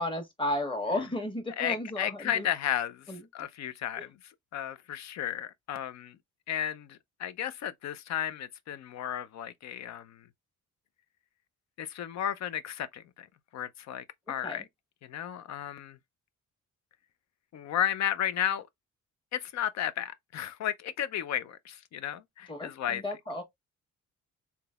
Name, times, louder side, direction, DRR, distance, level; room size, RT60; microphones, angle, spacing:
voice 1, 0.0-2.5 3.1-3.2 4.0-4.1 14.4-14.6 22.5-23.4, left 1 dB, 15° left, 1.4 m, -33 dB
voice 2, 1.6-6.2 6.5-10.3 11.8-13.3 13.5-14.7 15.0-16.0 17.5-18.7 19.3-23.0, left 10 dB, 65° left, 0.6 m, -34 dB
3.8 x 2.8 x 2.3 m
cardioid pair, 90°, 30 cm